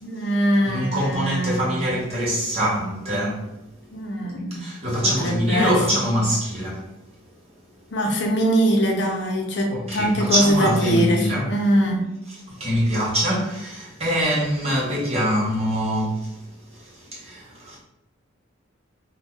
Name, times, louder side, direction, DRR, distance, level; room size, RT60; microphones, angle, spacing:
voice 1, 0.0-1.8 3.9-4.7 5.0-5.8 7.9-12.1, equal, 65° left, 0.6 m, -22 dB
voice 2, 0.6-3.5 4.5-6.8 9.7-11.5 12.5-16.3 16.9-17.8, equal, 35° right, 1.0 m, -24 dB
2.5 x 2.2 x 3.6 m
head